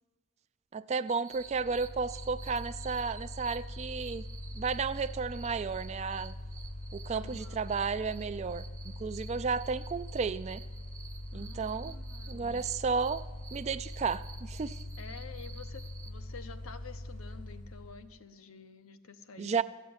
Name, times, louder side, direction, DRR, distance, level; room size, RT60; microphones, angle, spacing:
voice 1, 0.7-4.2 4.6-6.3 6.9-8.7 9.0-10.6 11.3-11.9 12.3-13.2 13.5-14.8 19.4-19.6, right 5 dB, 30° right, 14 dB, 0.3 m, -33 dB
sound 1, 1.1-16.1, right 5 dB, 15° right, 0.7 m, -52 dB
Mechanical fan, 1.3-18.2, left 1 dB, 35° left, 0.8 m, -43 dB
voice 2, 7.1-7.8 11.3-12.6 15.0-19.6, left 5 dB, 80° left, 8 dB, 0.9 m, -50 dB
12.5 x 7.5 x 9.6 m, 1.3 s
head